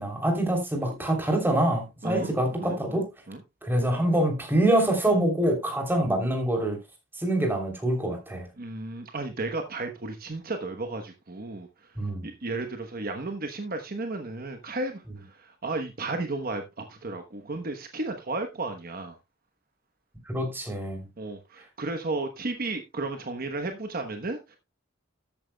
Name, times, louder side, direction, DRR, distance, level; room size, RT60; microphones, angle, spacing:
voice 1, 0.0-3.1 3.6-6.8 7.2-8.5 12.0-12.3 15.1-15.2 20.3-21.0, right 1 dB, 10° right, 3.2 m, -25 dB
voice 2, 2.6-3.0 3.3-3.4 8.6-11.7 12.2-15.0 15.6-16.6 17.0-19.1 21.2-24.6, right 2 dB, 45° right, 1.1 m, -33 dB
13.5 x 9.1 x 2.2 m
head